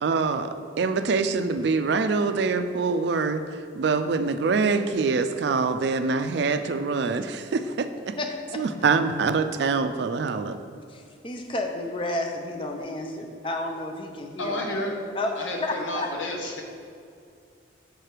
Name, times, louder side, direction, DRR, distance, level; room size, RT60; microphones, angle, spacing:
voice 1, 0.0-8.2 8.6-10.6, right 4 dB, 65° right, 10 dB, 0.4 m, -25 dB
voice 2, 8.2-8.6 10.9-14.6 15.1-16.1, left 2 dB, 25° left, 3 dB, 0.5 m, -31 dB
voice 3, 14.4-14.9 15.4-16.6, left 1 dB, 85° left, 1 dB, 1.1 m, -30 dB
6.7 x 4.9 x 4.5 m, 2.4 s
head